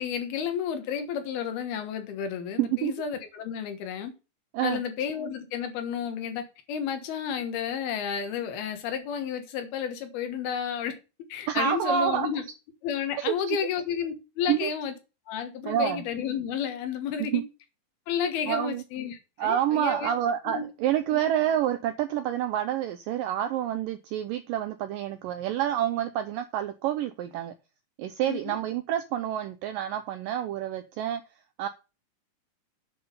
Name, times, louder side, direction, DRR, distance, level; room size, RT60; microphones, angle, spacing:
voice 1, 0.0-4.1 4.6-11.0 11.3-12.4 12.8-14.9 15.3-17.4 18.1-20.1 20.5-20.7 21.1-21.3 28.3-28.6, left 8 dB, 75° left, 3.2 m, -31 dB
voice 2, 2.6-2.9 4.5-4.8 11.5-12.3 13.2-13.6 14.5-14.7 15.7-16.0 17.2-17.4 18.5-18.8 19.4-27.5 28.0-31.2 31.6-31.7, right 11 dB, 85° right, 2.0 m, -28 dB
8.8 x 5.5 x 5.5 m
omnidirectional pair, 4.7 m